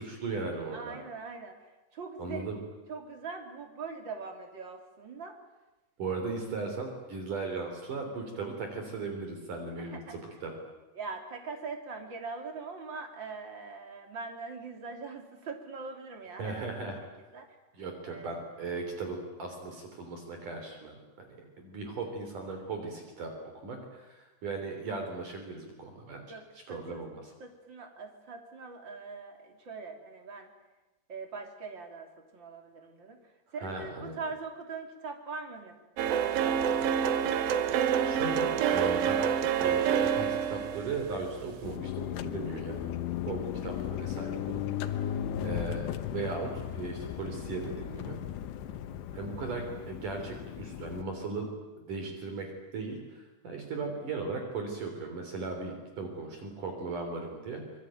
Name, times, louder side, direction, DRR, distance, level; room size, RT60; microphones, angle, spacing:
voice 1, 0.0-1.0 2.2-2.6 6.0-10.5 16.4-17.0 17.7-23.3 23.6-26.4 26.7-27.3 33.6-34.2 38.0-39.3 39.6-42.9 43.3-45.1 45.4-48.2 49.1-51.5 51.8-52.5 52.7-57.6, right 3 dB, 50° right, 4 dB, 4.8 m, -37 dB
voice 2, 0.7-2.5 2.9-5.4 9.8-10.2 10.9-16.9 17.3-17.5 18.0-18.4 26.3-27.0 27.4-30.5 31.1-33.2 33.5-37.5, right 4 dB, 30° right, 4 dB, 3.0 m, -42 dB
sound 1, 36.0-41.7, right 8 dB, 65° right, 2.7 m, -27 dB
sound 2, 41.6-51.0, left 11 dB, 90° left, 3.4 m, -36 dB
25.0 x 23.0 x 9.2 m, 1.1 s
omnidirectional pair, 4.9 m